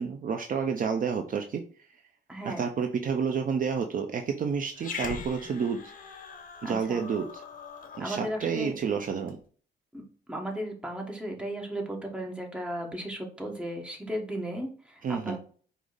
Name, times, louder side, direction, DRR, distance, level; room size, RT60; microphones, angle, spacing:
voice 1, 0.0-1.6 2.4-5.9 6.6-7.4 8.0-9.4 15.0-15.4, right 6 dB, 45° right, 4 dB, 0.5 m, -30 dB
voice 2, 2.3-2.7 6.6-7.0 8.0-8.8 9.9-10.0 10.3-15.4, right 1 dB, 5° right, 0 dB, 1.2 m, -35 dB
Growling, 4.8-9.4, left 5 dB, 45° left, 0.8 m, -42 dB
4.8 x 2.0 x 3.9 m, 0.43 s
cardioid pair, 90°, 20 cm